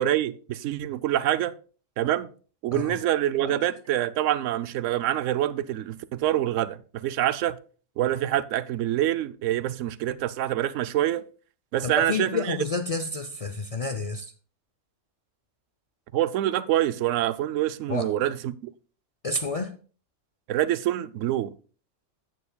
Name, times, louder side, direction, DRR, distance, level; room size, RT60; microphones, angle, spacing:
voice 1, 0.0-1.5 2.0-2.3 2.6-7.6 8.0-11.2 11.7-12.6 16.1-18.7 20.5-21.5, right 13 dB, 75° right, 0.9 m, -26 dB
voice 2, 11.8-14.3 17.9-18.1 19.2-19.7, left 3 dB, 65° left, 0.3 m, -30 dB
14.5 x 6.9 x 2.2 m
omnidirectional pair, 1.3 m